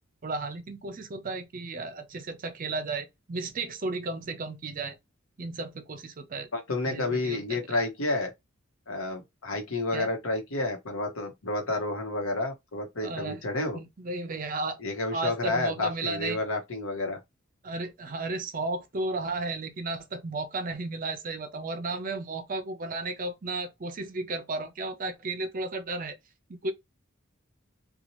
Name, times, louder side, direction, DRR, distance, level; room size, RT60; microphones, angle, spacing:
voice 1, 0.2-5.0 5.4-6.5 6.9-7.6 9.9-10.1 13.0-13.4 13.7-14.8 15.1-16.4 17.6-26.2 26.5-26.7, right 3 dB, 40° right, 0.5 m, -34 dB
voice 2, 6.5-8.3 8.9-13.8 14.8-17.2, left 2 dB, 85° left, 1.0 m, -30 dB
2.7 x 2.3 x 2.9 m
head